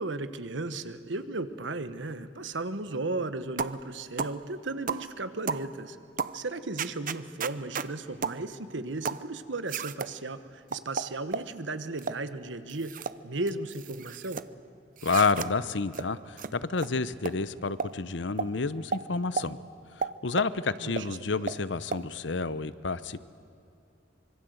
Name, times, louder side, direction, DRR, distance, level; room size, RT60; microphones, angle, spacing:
voice 1, 0.0-6.0 6.3-14.4 20.8-21.4, right 2 dB, 75° right, 12 dB, 1.3 m, -35 dB
sound 1, 3.6-3.8 4.2-4.4 4.9-5.1 5.5-5.7 6.2-6.4 6.8-7.9 8.2-8.4 9.0-9.3 9.7-10.1 10.7-11.5 12.0-12.2 12.7-13.2 13.5-14.4 15.0-15.5 15.9-16.1 16.4-16.5 16.8-16.9 17.2-17.4 17.8-17.9 18.4-18.5 18.9-19.0 19.4-19.5 20.0-20.5 21.0-21.1 21.5-21.6 21.9-22.0, right 5 dB, 45° right, 0.7 m, -33 dB
voice 2, 15.0-19.6 20.0-23.3, left 4 dB, 70° left, 15 dB, 0.8 m, -29 dB
25.5 x 23.5 x 8.0 m, 2.6 s
head